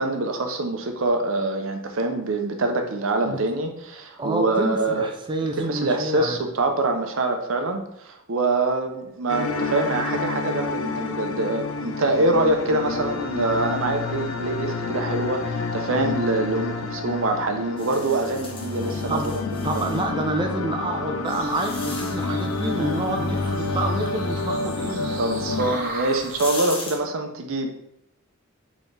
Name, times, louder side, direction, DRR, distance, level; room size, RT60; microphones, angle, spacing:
voice 1, 0.0-5.1 5.6-19.2 19.5-20.0 22.8-22.9 25.0-27.7, right 2 dB, 65° right, 5 dB, 0.6 m, -25 dB
voice 2, 4.2-6.4 19.1-19.4 19.6-25.6, right 2 dB, 20° right, 3 dB, 0.4 m, -28 dB
sound 1, 9.3-25.8, left 3 dB, 75° left, 0.5 m, -29 dB
sound 2, 17.8-20.0 20.8-22.4 25.4-25.5 26.0-27.0, left 2 dB, 25° left, 0.9 m, -37 dB
sound 3, 21.2-26.5, right 2 dB, 45° right, 0.9 m, -39 dB
4.3 x 3.5 x 3.3 m, 0.78 s
head